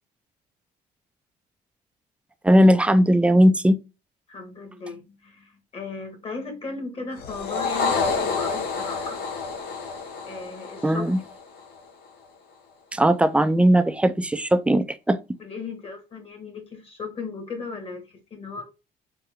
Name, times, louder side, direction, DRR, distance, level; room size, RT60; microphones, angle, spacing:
voice 1, 2.4-3.8 10.8-11.2 12.9-15.2, equal, 5° right, 0.4 m, -18 dB
voice 2, 4.3-9.2 10.2-11.1 15.4-18.6, left 4 dB, 35° left, 1.7 m, -36 dB
sound 1, 7.2-11.8, left 4 dB, 70° left, 1.1 m, -28 dB
4.4 x 3.3 x 3.6 m
cardioid pair, 110°, 17 cm